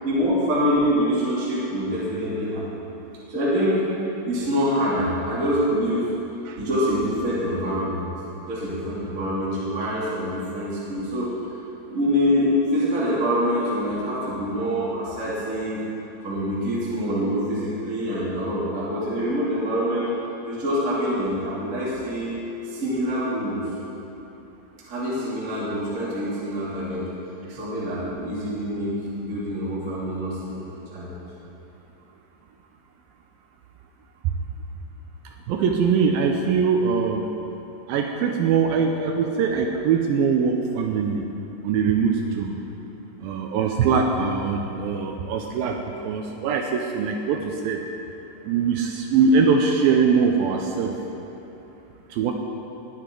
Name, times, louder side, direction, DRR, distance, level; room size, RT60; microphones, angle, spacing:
voice 1, 0.0-2.6 3.3-3.8 4.2-6.1 6.5-8.1 8.5-11.3 11.9-15.8 16.2-20.1 20.4-22.4 22.7-23.6 24.9-27.1 27.5-30.7 30.9-31.1, equal, 25° right, -9 dB, 2.4 m, -25 dB
voice 2, 35.5-37.3 37.9-41.2 41.6-42.6 43.2-47.8 48.4-50.9 52.1-52.3, right 5 dB, 80° right, 2 dB, 2.2 m, -22 dB
21.5 x 7.8 x 3.8 m, 3.0 s
omnidirectional pair, 4.8 m